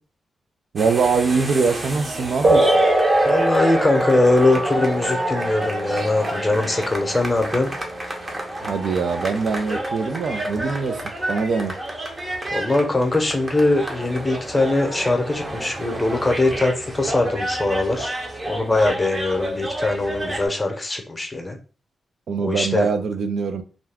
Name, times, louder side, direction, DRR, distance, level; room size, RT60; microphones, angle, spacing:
voice 1, 0.7-2.7 8.6-11.0 11.3-11.8 22.3-23.6, right 5 dB, 70° right, 0.4 m, -23 dB
sound 1, 0.8-20.5, right 1 dB, 30° right, 0.7 m, -30 dB
sound 2, 2.4-10.4, right 1 dB, 50° right, 1.1 m, -23 dB
voice 2, 3.2-7.7 12.5-18.2 18.5-21.6 22.4-22.9, left 2 dB, 20° left, 0.7 m, -21 dB
2.5 x 2.2 x 3.4 m
cardioid pair, 80°, 0 cm